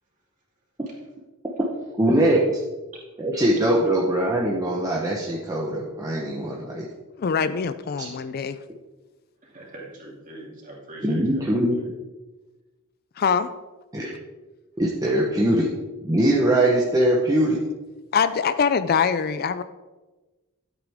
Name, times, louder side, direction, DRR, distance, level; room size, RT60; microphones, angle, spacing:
voice 1, 2.0-2.4 3.2-6.9 8.0-8.1 11.0-11.8 13.9-14.1 14.8-15.7 16.0-17.6, right 1 dB, 15° right, -3 dB, 1.0 m, -21 dB
voice 2, 7.2-8.6 13.2-13.5 18.1-19.6, left 6 dB, 45° left, 12 dB, 0.4 m, -23 dB
voice 3, 9.4-11.4 11.8-11.9, right 1 dB, 35° right, -3 dB, 2.9 m, -42 dB
12.5 x 8.3 x 3.6 m, 1.2 s
head